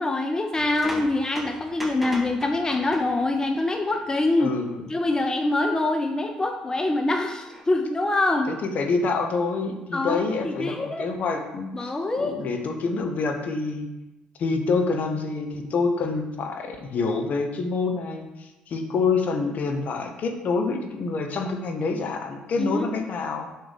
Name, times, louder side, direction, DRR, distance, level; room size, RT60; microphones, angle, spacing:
voice 1, 0.0-4.5 4.9-8.5 9.9-11.1 11.7-12.4 22.6-22.9, left 2 dB, 20° left, 4 dB, 0.8 m, -25 dB
sound 1, 0.6-3.5 3.9-4.2 5.8-5.9 7.4-7.6, equal, 5° right, 1.6 m, -38 dB
voice 2, 4.4-4.9 8.6-13.9 14.4-23.5, left 4 dB, 50° left, 4 dB, 1.3 m, -27 dB
7.0 x 5.8 x 5.3 m, 1.0 s
figure-of-eight pair, 50°, 3 cm